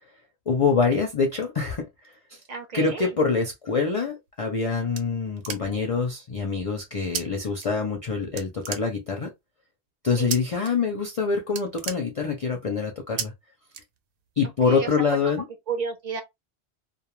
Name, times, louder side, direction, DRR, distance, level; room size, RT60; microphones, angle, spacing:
voice 1, 0.5-2.4 2.7-9.3 10.0-13.3 14.4-15.4, left 4 dB, 45° left, 0.4 m, -25 dB
voice 2, 2.5-3.2 10.2-10.3 14.6-14.9 15.2-16.2, right 5 dB, 45° right, 0.7 m, -33 dB
sound 1, 4.3-6.0 7.1-7.2 7.6-8.1 8.4-9.3 10.3-10.7 11.0-11.2 11.4-12.6 13.2-13.3 13.7-14.4, right 7 dB, 80° right, 0.9 m, -34 dB
2.3 x 2.2 x 3.0 m
omnidirectional pair, 1.1 m